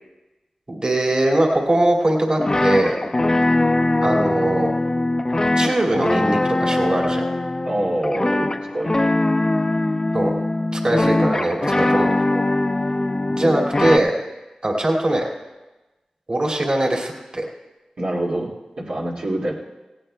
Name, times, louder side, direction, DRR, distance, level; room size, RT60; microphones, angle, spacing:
voice 1, 0.7-3.0 4.0-4.7 5.6-7.2 10.1-10.3 10.7-12.1 13.3-14.1 14.6-15.3 16.3-17.5, right 1 dB, 45° right, 0 dB, 2.3 m, -21 dB
sound 1, 2.4-14.0, left 2 dB, 30° left, 0.6 m, -21 dB
voice 2, 7.6-9.0 11.8-12.1 18.0-18.5 18.8-19.5, right 1 dB, 80° right, -5 dB, 2.1 m, -26 dB
17.5 x 16.5 x 2.2 m, 1.1 s
cardioid pair, 50°, 2 cm